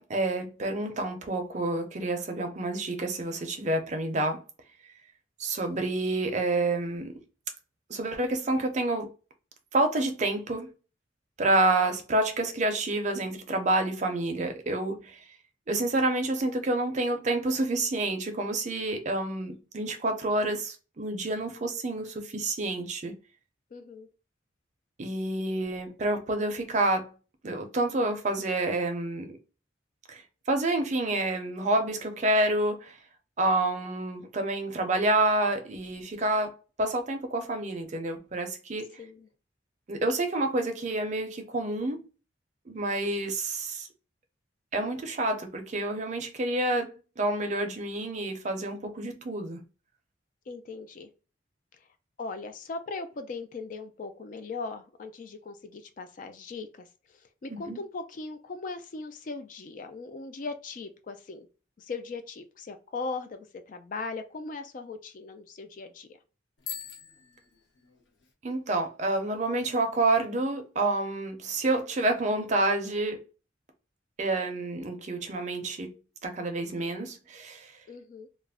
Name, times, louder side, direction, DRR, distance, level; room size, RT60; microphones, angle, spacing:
voice 1, 0.0-4.4 5.4-7.2 7.9-9.1 9.7-10.7 11.4-15.2 15.7-23.1 25.0-27.1 27.4-29.4 30.1-30.2 30.5-33.0 33.4-36.5 36.8-38.9 39.9-42.0 42.7-43.9 44.7-49.6 57.5-57.8 68.4-73.2 74.2-75.9 76.2-77.7, right 2 dB, 40° right, 0.5 m, -28 dB
voice 2, 23.7-24.1 39.0-39.3 50.5-51.1 51.7-51.9 52.2-61.5 61.8-66.2 77.9-78.3, left 3 dB, 45° left, 0.3 m, -39 dB
Bicycle bell, 66.6-68.3, left 8 dB, 75° left, 0.7 m, -43 dB
2.4 x 2.0 x 3.4 m
head